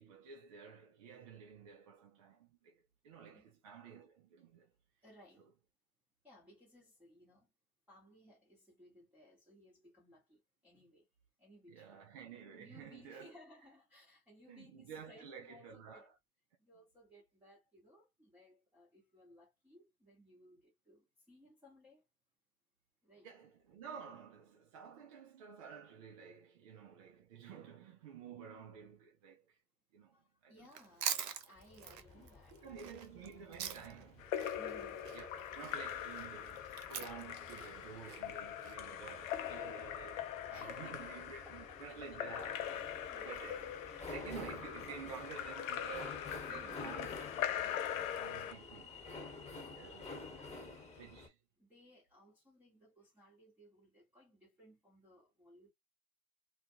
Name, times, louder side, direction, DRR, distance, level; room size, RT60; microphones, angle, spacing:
voice 1, 0.0-4.7 11.7-13.3 14.5-16.1 23.2-29.6 29.9-30.2 30.4-30.7 32.1-34.6 35.1-42.6 42.9-43.0 43.2-43.6 44.1-47.5 48.0-48.9 49.7-50.2 51.0-51.3, right 7 dB, 25° right, 0.3 m, -51 dB
voice 2, 5.0-5.5 6.2-7.5 7.9-11.1 11.4-12.0 12.5-16.1 16.6-22.0 23.0-23.3 30.1-32.9 34.6-35.2 38.8-39.3 40.5-42.2 42.8-43.4 46.5-46.8 48.2-49.7 50.4-51.2 51.6-55.7, left 1 dB, 5° right, 1.0 m, -62 dB
Chewing mastication, 30.7-34.1 34.4-38.7, right 8 dB, 75° right, 0.8 m, -43 dB
sound 1, 31.6-51.3, left 3 dB, 15° left, 1.3 m, -51 dB
Splash splatter / Drip / Trickle dribble, 34.2-48.5, left 10 dB, 55° left, 0.6 m, -42 dB
2.4 x 2.3 x 2.7 m
hypercardioid pair, 110°, 48 cm